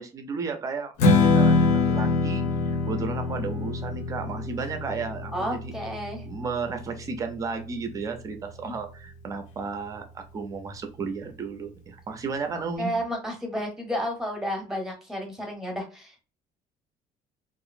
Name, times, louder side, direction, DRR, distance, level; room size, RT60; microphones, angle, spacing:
voice 1, 0.0-2.5 2.9-5.7 6.2-12.9, right 5 dB, 25° right, 7 dB, 0.5 m, -33 dB
Strum, 1.0-7.3, left 3 dB, 60° left, 0.6 m, -24 dB
voice 2, 5.3-6.2 8.6-8.7 12.8-16.2, equal, 5° right, 1 dB, 0.8 m, -31 dB
2.8 x 2.5 x 2.5 m, 0.34 s
cardioid pair, 170°, 15 cm